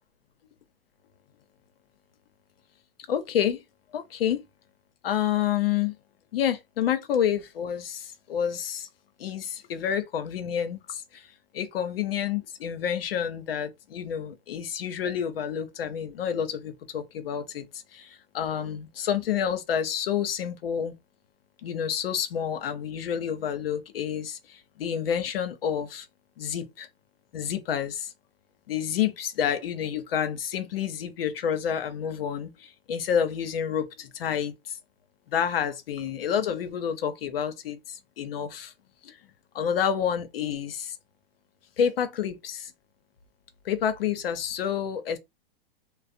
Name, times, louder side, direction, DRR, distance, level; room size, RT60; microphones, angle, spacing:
voice 1, 3.1-3.6 3.9-4.4 5.0-5.9 6.3-8.9 9.2-11.3 11.5-20.9 21.6-26.1 26.4-26.9 27.3-28.1 28.7-34.8 35.3-38.7 39.0-39.2 39.5-41.0 41.8-42.7 43.6-45.2, left 8 dB, 80° left, 0.6 m, -29 dB
2.4 x 2.0 x 2.6 m
hypercardioid pair, 130°, 29 cm